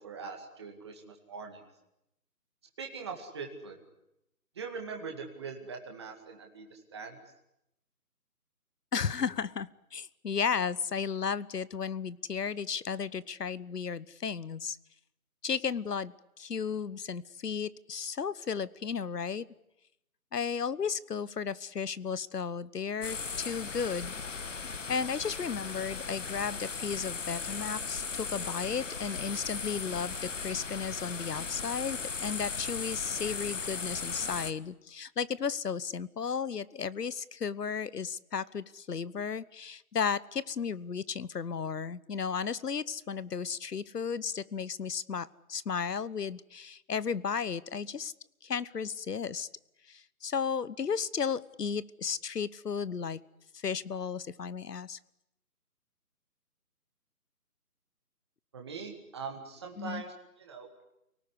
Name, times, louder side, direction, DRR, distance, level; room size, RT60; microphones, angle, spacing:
voice 1, 0.0-1.6 2.8-3.8 4.6-7.2 58.5-60.7, right 5 dB, 15° right, 2 dB, 2.1 m, -42 dB
voice 2, 8.9-14.8 15.4-19.4 20.3-24.1 24.9-48.1 48.4-49.5 49.9-53.2 53.5-55.0 59.8-60.0, left 6 dB, 80° left, 19 dB, 1.2 m, -34 dB
sound 1, 23.0-34.5, left 5 dB, 50° left, 1.5 m, -37 dB
29.0 x 18.5 x 9.8 m, 0.84 s
hypercardioid pair, 175°, 47 cm